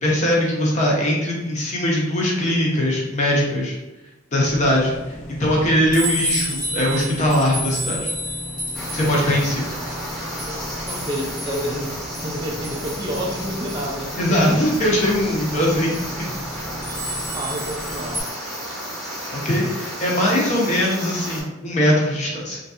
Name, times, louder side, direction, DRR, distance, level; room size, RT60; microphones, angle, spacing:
voice 1, 0.0-3.8 4.3-8.1 8.9-9.7 14.2-15.9 19.3-22.6, left 1 dB, 35° left, -3 dB, 0.7 m, -21 dB
sound 1, 4.5-18.2, equal, 60° left, 1.2 m, -31 dB
sound 2, 8.7-21.4, equal, ahead, 0.7 m, -32 dB
voice 2, 10.9-14.5 17.3-18.3, equal, 20° right, -3 dB, 0.3 m, -29 dB
3.1 x 2.7 x 2.4 m, 1.0 s
head